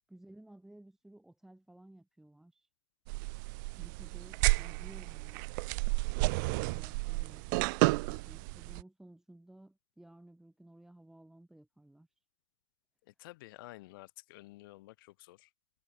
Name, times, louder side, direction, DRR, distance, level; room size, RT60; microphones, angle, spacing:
voice 1, 0.1-2.7 3.8-5.5 6.2-12.1, right 1 dB, 5° right, 2.3 m, -56 dB
sound 1, 3.1-8.8, right 28 dB, 65° right, 0.5 m, -32 dB
voice 2, 13.1-15.5, left 19 dB, 80° left, 2.1 m, -52 dB
supercardioid pair, 160°, 11 cm